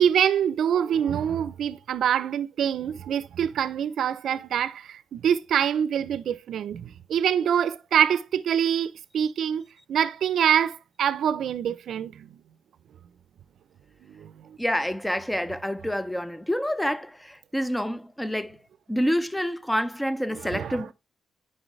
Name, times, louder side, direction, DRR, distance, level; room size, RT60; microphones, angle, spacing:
voice 1, 0.0-12.4 14.0-14.6 20.3-20.9, right 9 dB, 75° right, 0.6 m, -25 dB
voice 2, 14.6-18.6 18.9-20.9, equal, 5° left, 0.6 m, -28 dB
9.7 x 5.4 x 3.2 m
cardioid pair, 85°, 0 cm